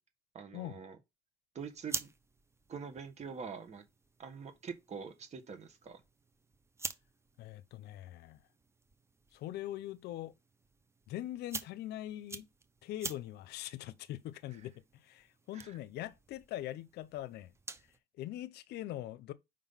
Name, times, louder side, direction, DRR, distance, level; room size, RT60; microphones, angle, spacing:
voice 1, 0.3-1.0 1.5-2.1 2.7-3.8 4.2-6.0 15.5-15.8, right 6 dB, 40° right, 1.5 m, -45 dB
sound 1, 1.6-18.0, right 3 dB, 15° right, 0.6 m, -48 dB
voice 2, 7.4-8.4 9.3-10.3 11.1-12.5 12.8-14.7 15.0-17.5 18.2-19.3, left 14 dB, 75° left, 0.6 m, -42 dB
5.2 x 3.8 x 5.6 m
cardioid pair, 110°, 17 cm